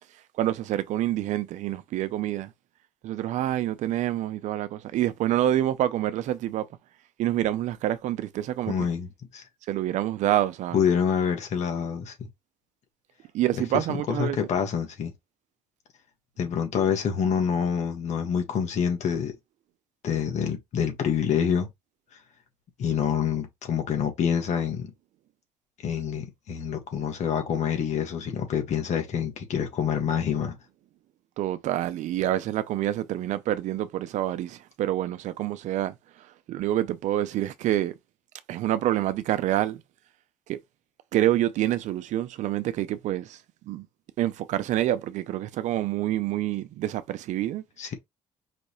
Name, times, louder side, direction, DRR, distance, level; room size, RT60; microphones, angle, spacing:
voice 1, 0.4-2.5 3.0-6.7 7.2-8.7 9.7-10.8 13.3-14.4 31.4-35.9 36.5-37.9 38.5-39.8 40.5-40.6 41.1-43.4 43.6-43.9 44.2-47.6, right 13 dB, 75° right, 0.6 m, -27 dB
voice 2, 8.7-9.4 10.7-12.1 13.7-15.1 16.4-19.3 20.0-21.7 22.8-24.9 25.8-30.6 47.8-47.9, left 7 dB, 65° left, 1.7 m, -27 dB
5.1 x 3.1 x 3.0 m
cardioid pair, 90°, 12 cm